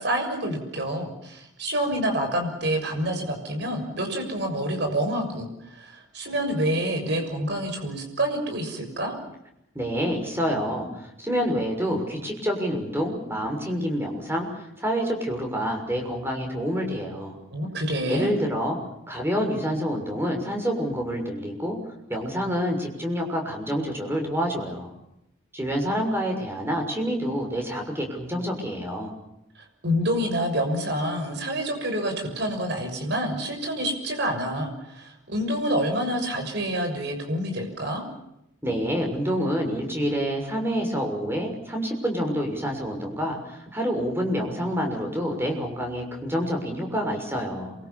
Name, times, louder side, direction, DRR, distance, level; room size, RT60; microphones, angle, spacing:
voice 1, 0.0-9.1 17.5-18.3 29.5-38.0, equal, 55° right, 4 dB, 6.8 m, -27 dB
voice 2, 9.7-17.4 18.1-18.8 19.1-21.8 22.1-24.9 25.5-29.1 38.6-47.7, equal, 10° right, 2 dB, 6.5 m, -27 dB
28.0 x 24.0 x 7.2 m, 0.83 s
head